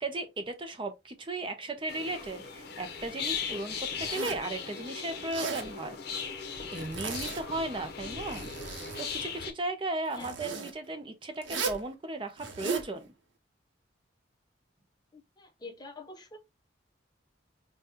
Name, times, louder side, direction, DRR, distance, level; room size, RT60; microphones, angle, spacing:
voice 1, 0.0-6.0 6.7-8.5 9.0-13.1, right 2 dB, 25° right, 0.5 m, -36 dB
sound 1, 1.9-9.5, left 6 dB, 55° left, 0.7 m, -38 dB
Zipper (clothing), 3.9-4.5 5.2-5.7 6.7-7.5 8.1-9.1 10.1-10.7 11.4-11.8 12.4-12.9, right 5 dB, 70° right, 0.8 m, -36 dB
voice 2, 15.1-16.4, left 3 dB, 20° left, 0.7 m, -46 dB
5.0 x 2.2 x 2.8 m
head